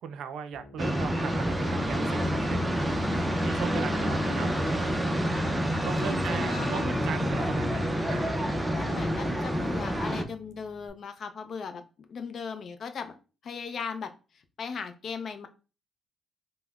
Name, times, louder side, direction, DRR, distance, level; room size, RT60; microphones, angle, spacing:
voice 1, 0.0-2.7 3.4-4.5 5.8-8.3, right 7 dB, 75° right, 10 dB, 0.4 m, -38 dB
Piano, 0.5-10.9, left 4 dB, 20° left, 1.7 m, -51 dB
sound 1, 0.8-10.2, equal, 10° right, 0.4 m, -28 dB
voice 2, 4.2-4.6 6.0-7.3 8.7-13.2 13.4-15.5, left 5 dB, 55° left, 8 dB, 0.5 m, -38 dB
5.2 x 2.0 x 2.3 m, 0.33 s
cardioid pair, 90°, 0 cm